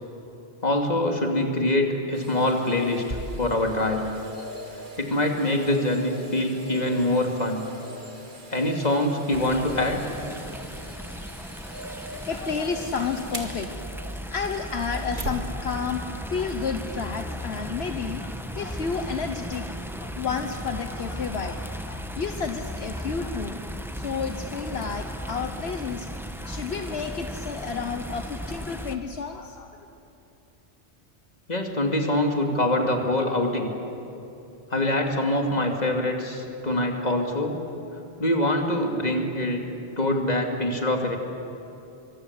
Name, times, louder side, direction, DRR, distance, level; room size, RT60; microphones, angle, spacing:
voice 1, 0.6-4.1 5.0-7.6 8.5-10.0 31.5-33.7 34.7-37.6 38.2-39.7 40.0-41.2, left 1 dB, 40° left, 2 dB, 2.7 m, -24 dB
sound 1, 2.1-15.5 16.0-16.1, equal, 50° right, 2.5 m, -40 dB
sound 2, 9.3-29.0, equal, ahead, 1.2 m, -36 dB
voice 2, 12.3-13.7 14.3-16.0 16.3-23.6 23.9-26.1 26.4-29.9, left 5 dB, 70° left, 6 dB, 1.4 m, -31 dB
26.5 x 24.5 x 8.3 m, 2.8 s
omnidirectional pair, 1.1 m